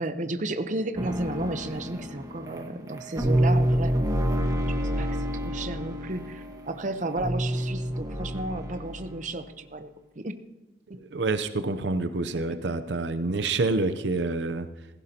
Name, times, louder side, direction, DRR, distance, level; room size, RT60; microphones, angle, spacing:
voice 1, 0.0-3.9 4.8-9.9 10.2-10.4 10.9-11.0, right 2 dB, 45° right, 9 dB, 0.8 m, -33 dB
sound 1, 1.0-9.2, equal, 20° right, 1.4 m, -28 dB
voice 2, 11.0-14.7, right 3 dB, 85° right, 11 dB, 0.7 m, -27 dB
16.5 x 15.5 x 2.9 m, 1.1 s
head